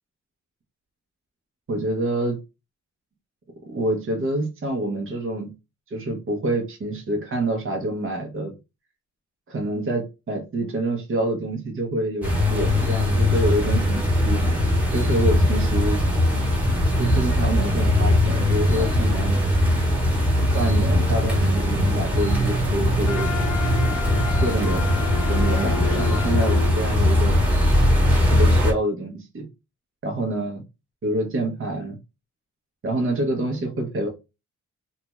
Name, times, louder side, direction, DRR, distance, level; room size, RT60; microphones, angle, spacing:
voice 1, 1.7-2.4 3.7-5.5 5.9-8.5 9.5-14.6 14.9-16.0 17.0-19.4 20.5-23.3 24.4-27.3 28.3-29.5 30.0-30.6 31.0-32.0 32.8-34.1, right 1 dB, 40° right, 0.9 m, -27 dB
sound 1, 12.2-28.7, left 1 dB, 5° right, 1.3 m, -20 dB
Wind instrument woodwind instrument, 23.0-26.7, left 10 dB, 90° left, 0.5 m, -32 dB
2.6 x 2.3 x 3.0 m
cardioid pair, 90°, 31 cm